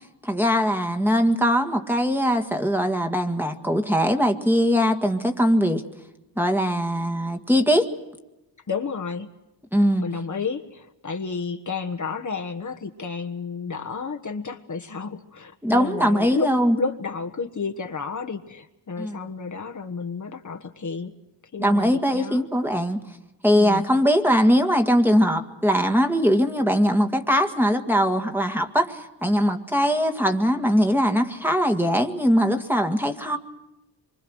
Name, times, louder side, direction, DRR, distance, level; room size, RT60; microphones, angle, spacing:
voice 1, 0.2-5.8 6.4-7.9 9.7-10.0 15.6-16.8 19.0-19.2 21.6-23.0 23.4-33.4, equal, 5° right, 5 dB, 1.8 m, -21 dB
voice 2, 8.7-9.3 10.0-16.5 16.7-21.1 21.5-22.5 23.5-23.9, left 5 dB, 40° left, 4 dB, 1.4 m, -31 dB
26.0 x 24.5 x 6.3 m, 0.96 s
wide cardioid pair, 110°, 44 cm